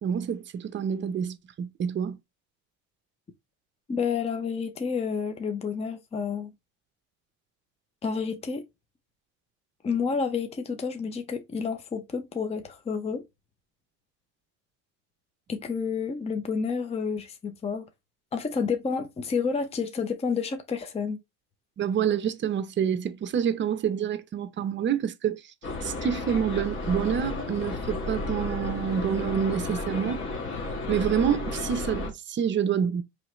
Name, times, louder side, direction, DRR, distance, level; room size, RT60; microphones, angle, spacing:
voice 1, 0.0-2.2 21.8-25.4 25.8-30.2 30.9-33.0, right 8 dB, 35° right, 0.6 m, -27 dB
voice 2, 3.9-6.5 8.0-8.6 9.8-13.2 15.5-17.9 18.3-21.2, left 5 dB, 20° left, 0.6 m, -30 dB
sound 1, 25.6-32.1, left 2 dB, 35° left, 1.5 m, -33 dB
4.6 x 3.1 x 3.0 m
cardioid pair, 120°, 33 cm